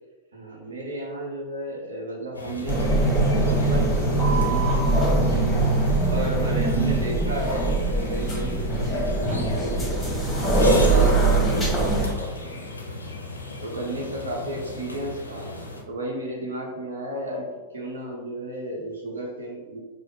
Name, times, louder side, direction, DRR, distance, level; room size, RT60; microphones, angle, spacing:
voice 1, 0.3-10.0 10.2-12.6 13.0-13.1 13.6-15.5 15.9-17.5 17.7-19.8, right 1 dB, 70° right, -1 dB, 0.9 m, -33 dB
sound 1, 2.3-15.8, left 2 dB, 80° left, 0.5 m, -37 dB
sound 2, 2.7-12.1, right 2 dB, 5° left, 1.2 m, -22 dB
4.7 x 2.0 x 3.3 m, 1.3 s
figure-of-eight pair, 90°, 0 cm